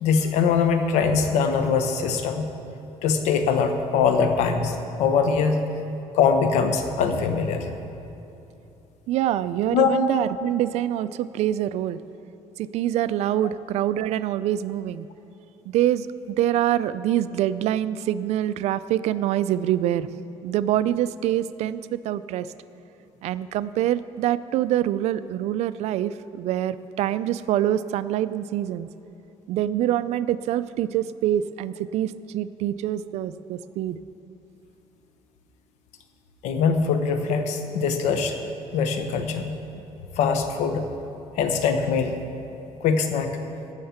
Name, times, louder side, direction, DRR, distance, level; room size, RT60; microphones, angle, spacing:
voice 1, 0.0-2.5 3.0-5.6 6.1-7.7 9.7-9.9 36.4-38.4 38.7-39.5 40.2-40.8 41.4-42.2 42.8-43.4, left 5 dB, 85° left, 7 dB, 1.0 m, -22 dB
voice 2, 9.1-12.0 12.6-15.1 15.7-20.1 20.4-22.5 23.2-28.9 29.5-34.0, right 12 dB, 70° right, 15 dB, 0.4 m, -25 dB
16.0 x 6.5 x 5.8 m, 2.9 s
cardioid pair, 125°, 12 cm